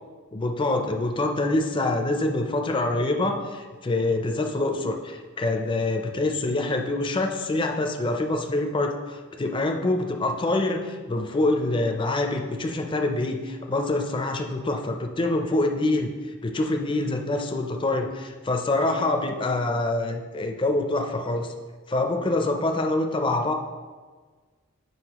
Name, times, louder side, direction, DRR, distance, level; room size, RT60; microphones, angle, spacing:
voice 1, 0.3-16.1 16.4-21.5 21.9-23.5, left 2 dB, 25° left, 4 dB, 0.5 m, -25 dB
7.9 x 5.3 x 2.9 m, 1.5 s
head